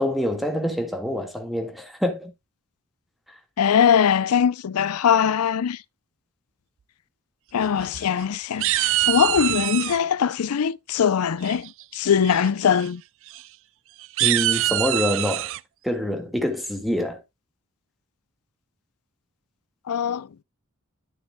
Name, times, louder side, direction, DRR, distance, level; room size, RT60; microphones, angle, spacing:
voice 1, 0.0-2.3 14.2-15.5 15.8-17.2, left 1 dB, ahead, 1.6 m, -26 dB
voice 2, 3.6-5.8 7.5-13.0 19.9-20.3, left 7 dB, 90° left, 0.5 m, -21 dB
sound 1, 7.6-8.2 8.6-10.0 11.4-11.8 12.2-12.5 12.7-12.9 13.3-13.4 14.0-15.6, right 15 dB, 60° right, 0.4 m, -24 dB
12.0 x 7.1 x 2.2 m
head